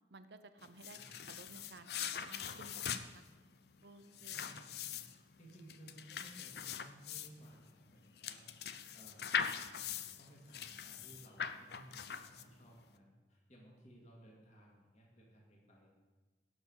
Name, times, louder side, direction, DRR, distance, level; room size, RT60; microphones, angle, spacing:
voice 1, 0.1-3.2 3.8-4.5, right 3 dB, 65° right, 11 dB, 0.7 m, -56 dB
sound 1, 0.6-12.7, left 7 dB, 60° left, 0.5 m, -42 dB
voice 2, 0.9-1.3 4.3-5.1 5.4-15.9, right 1 dB, 40° left, -2 dB, 2.3 m, -59 dB
17.0 x 6.3 x 5.6 m, 1.3 s
head